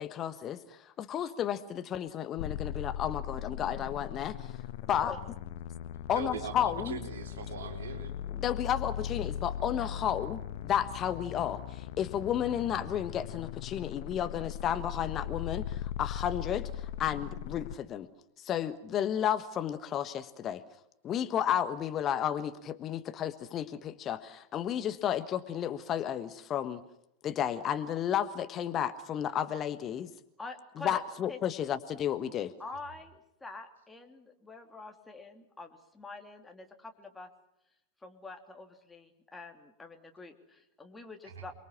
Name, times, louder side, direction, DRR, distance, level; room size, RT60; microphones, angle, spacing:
voice 1, 0.0-4.5 4.9-5.1 6.1-7.0 8.3-18.1 18.4-20.6 21.0-26.8 27.2-30.1 30.8-32.5, left 9 dB, 30° left, 10 dB, 1.4 m, -32 dB
sound 1, 2.4-17.7, left 10 dB, 55° left, 1.0 m, -39 dB
voice 2, 6.1-8.1 41.4-41.5, right 6 dB, 65° right, 3 dB, 4.4 m, -40 dB
voice 3, 30.4-31.0 31.3-31.4 32.6-37.3 38.0-41.5, left 3 dB, 10° left, 4 dB, 3.1 m, -46 dB
29.0 x 22.5 x 6.0 m, 0.79 s
figure-of-eight pair, 90°, 0 cm